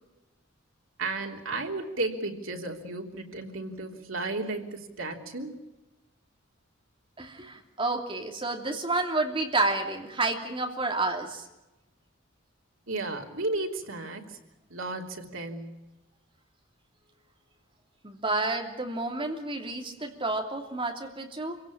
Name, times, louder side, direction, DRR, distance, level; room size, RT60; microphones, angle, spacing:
voice 1, 1.0-5.6 12.9-14.2 14.7-15.8, right 2 dB, 85° right, 2 dB, 3.3 m, -33 dB
voice 2, 7.2-11.4 18.0-21.6, right 2 dB, 25° right, 3 dB, 2.9 m, -30 dB
27.0 x 17.0 x 8.7 m, 1.0 s
head